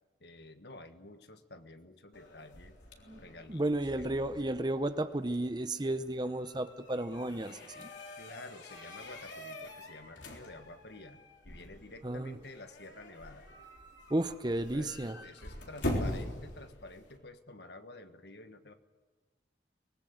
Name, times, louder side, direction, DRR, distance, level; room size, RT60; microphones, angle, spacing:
voice 1, 0.2-2.8 3.2-4.5 8.2-13.5 14.7-14.9 15.2-18.7, left 2 dB, 65° left, 8 dB, 1.5 m, -50 dB
sound 1, 2.1-17.2, left 1 dB, 90° left, 3.7 m, -43 dB
voice 2, 3.5-7.9 12.0-12.4 14.1-15.2, right 1 dB, 25° right, 11 dB, 0.7 m, -33 dB
24.0 x 19.5 x 8.0 m, 1.3 s
head